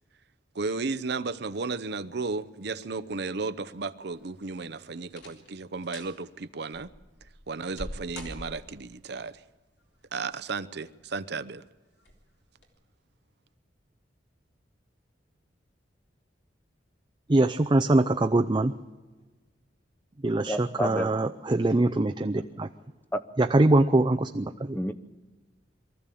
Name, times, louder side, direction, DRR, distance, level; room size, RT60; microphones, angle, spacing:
voice 1, 0.5-6.9 7.5-9.4 10.1-11.6, right 4 dB, 65° right, 14 dB, 0.7 m, -34 dB
sound 1, 4.1-4.6 5.1-5.5 5.8-6.2 6.7-8.9 10.1-10.7 11.2-11.3 12.0-12.2 12.6-12.7, left 1 dB, 70° left, 3.7 m, -43 dB
voice 2, 17.3-18.8 20.2-22.7 23.4-24.8, right 2 dB, 25° right, 6 dB, 0.6 m, -23 dB
voice 3, 20.5-21.1 23.1-23.2 24.7-24.9, left 1 dB, 10° left, 12 dB, 0.8 m, -29 dB
23.5 x 14.0 x 8.5 m, 1.3 s
head